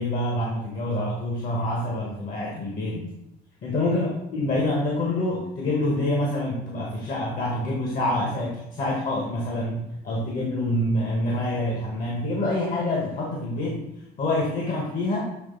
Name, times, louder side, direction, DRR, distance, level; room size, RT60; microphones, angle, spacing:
voice 1, 0.0-3.1 3.6-13.8 14.2-15.2, left 1 dB, 55° left, -2 dB, 1.4 m, -26 dB
7.7 x 3.4 x 3.9 m, 0.92 s
cardioid pair, 110°, 17 cm